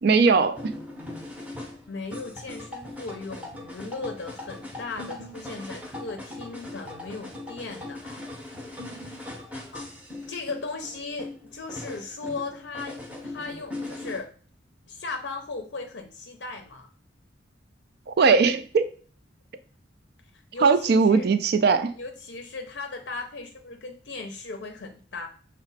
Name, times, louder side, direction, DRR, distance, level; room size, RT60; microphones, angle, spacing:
voice 1, 0.0-0.7 18.1-18.9 20.6-21.9, right 5 dB, 55° right, 0.4 m, -20 dB
sound 1, 0.6-14.2, left 2 dB, 5° right, 0.7 m, -39 dB
voice 2, 1.9-8.4 9.7-9.8 10.3-14.3 14.9-16.9 20.5-21.3 22.0-25.3, left 3 dB, 60° left, 0.5 m, -37 dB
6.0 x 2.1 x 4.0 m
head